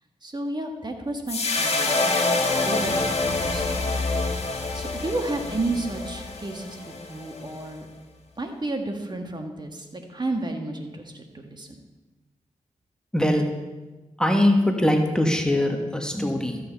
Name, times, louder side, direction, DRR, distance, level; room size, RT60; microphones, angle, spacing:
voice 1, 0.2-2.1 2.7-3.8 4.7-7.9 8.4-11.7, right 2 dB, 35° right, 4 dB, 1.7 m, -32 dB
sound 1, 1.3-7.7, left 3 dB, 50° left, 1.6 m, -26 dB
voice 2, 13.1-13.5 14.2-16.6, left 1 dB, 5° left, 2 dB, 1.5 m, -22 dB
13.5 x 7.9 x 4.2 m, 1.2 s
cardioid pair, 50°, 13 cm